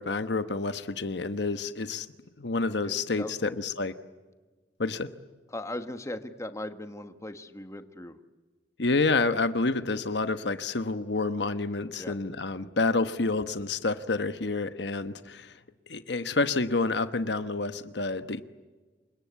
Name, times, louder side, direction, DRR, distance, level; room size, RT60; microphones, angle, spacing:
voice 1, 0.0-2.1 2.4-3.9 4.8-5.1 8.8-15.5 15.9-18.4, left 3 dB, 70° left, 11 dB, 1.1 m, -28 dB
voice 2, 2.8-3.5 5.5-8.2 12.0-12.2, left 1 dB, 15° left, 9 dB, 1.4 m, -38 dB
28.5 x 25.0 x 8.3 m, 1.3 s
head